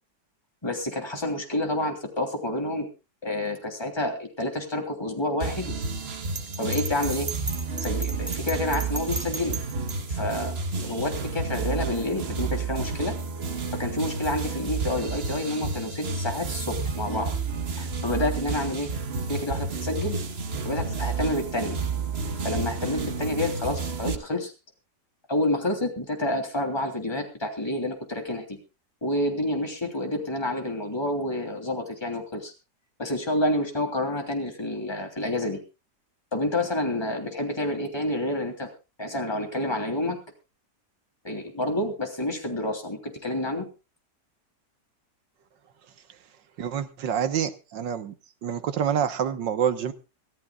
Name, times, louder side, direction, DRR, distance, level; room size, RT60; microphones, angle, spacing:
voice 1, 0.6-2.9 3.2-5.7 6.6-7.3 7.8-9.6 10.1-10.5 10.8-13.2 13.7-17.3 17.8-18.9 19.3-20.2 20.6-21.8 22.4-24.5 25.3-28.6 29.0-32.5 33.0-35.6 36.3-38.7 39.0-40.2 41.2-43.7, left 1 dB, 15° left, 3.2 m, -29 dB
sound 1, 5.4-24.1, right 4 dB, 40° right, 1.2 m, -31 dB
Bell, 6.4-10.0, right 2 dB, 25° right, 2.2 m, -34 dB
voice 2, 46.6-48.1 48.4-49.9, right 8 dB, 85° right, 1.8 m, -27 dB
25.0 x 14.5 x 2.4 m
omnidirectional pair, 1.9 m